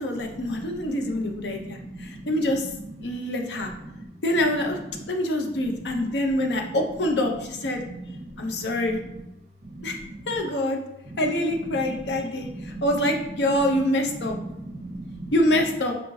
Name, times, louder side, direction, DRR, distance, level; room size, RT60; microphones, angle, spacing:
voice 1, 0.0-2.7 3.0-3.7 4.2-4.8 5.1-7.8 8.4-9.0 9.8-10.0 10.3-10.8 11.2-14.4 15.3-15.9, left 1 dB, 75° left, 3 dB, 0.6 m, -25 dB
voice 2, 0.6-1.0 1.4-2.3 3.9-4.0 7.9-8.7 9.7-10.2 11.1-11.2 12.1-12.2 12.4-12.8 14.2-15.3, right 1 dB, 35° right, 1 dB, 0.7 m, -39 dB
4.5 x 3.1 x 2.6 m, 0.86 s
head